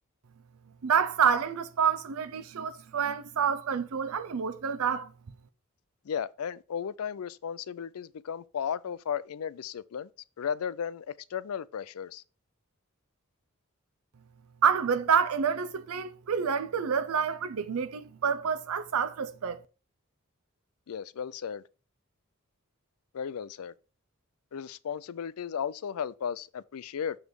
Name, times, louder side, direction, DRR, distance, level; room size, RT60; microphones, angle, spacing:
voice 1, 0.8-5.1 14.6-19.6, right 7 dB, 85° right, 0.5 m, -28 dB
voice 2, 6.1-10.1 10.4-12.2 20.9-21.6 23.1-23.7 24.5-27.2, left 7 dB, 90° left, 0.4 m, -35 dB
7.1 x 3.3 x 6.2 m
head